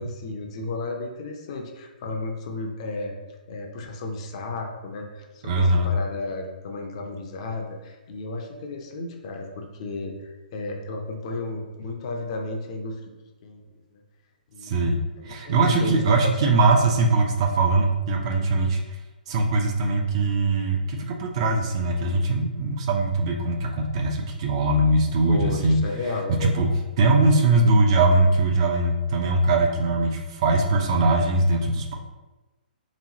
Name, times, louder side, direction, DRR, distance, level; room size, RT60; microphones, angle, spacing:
voice 1, 0.0-3.2 3.5-13.0 13.4-13.6 14.5-16.3 25.3-26.6, left 2 dB, 40° left, 2 dB, 0.6 m, -33 dB
voice 2, 5.4-5.9 14.6-18.8 19.3-25.8 26.4-26.7 27.0-31.9, right 2 dB, 35° right, 2 dB, 0.5 m, -21 dB
3.6 x 3.0 x 2.8 m, 1.2 s
figure-of-eight pair, 125°, 5 cm